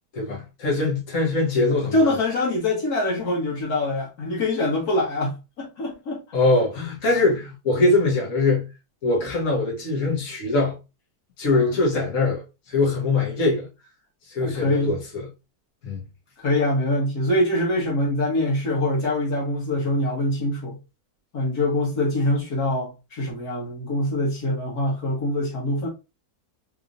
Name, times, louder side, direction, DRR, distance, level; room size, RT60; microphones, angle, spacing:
voice 1, 0.1-2.1 6.3-8.7 9.0-10.8 11.4-13.7 14.3-15.0 15.8-16.0, left 2 dB, 55° left, 1.7 m, -22 dB
voice 2, 1.7-6.2 11.5-11.7 14.4-14.9 16.4-20.8 21.3-25.9, left 1 dB, 70° left, 2.0 m, -24 dB
4.2 x 3.2 x 2.6 m
omnidirectional pair, 1.7 m